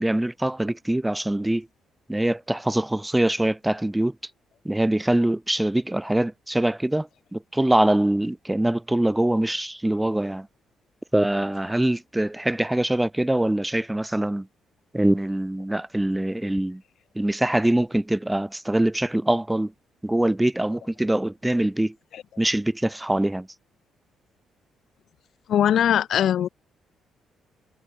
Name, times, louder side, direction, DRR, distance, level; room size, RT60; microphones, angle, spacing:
voice 1, 0.0-1.7 2.1-4.2 4.6-10.5 11.1-14.5 14.9-16.8 17.1-19.7 20.0-22.0 22.4-23.5, right 1 dB, 10° right, 0.7 m, -23 dB
voice 2, 25.5-26.5, left 10 dB, 65° left, 0.4 m, -20 dB
cardioid pair, 90°, 0 cm